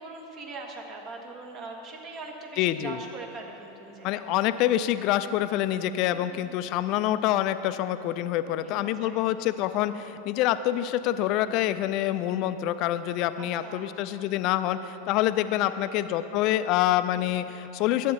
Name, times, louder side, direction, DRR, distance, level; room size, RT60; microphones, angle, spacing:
voice 1, 0.0-4.3 6.1-6.6 8.4-9.2 13.4-14.0 15.8-16.2, right 3 dB, 40° right, 2 dB, 1.5 m, -42 dB
voice 2, 2.6-3.0 4.0-18.1, left 13 dB, 50° left, 12 dB, 0.4 m, -26 dB
12.0 x 8.3 x 4.2 m, 3.0 s
hypercardioid pair, 95°, 0 cm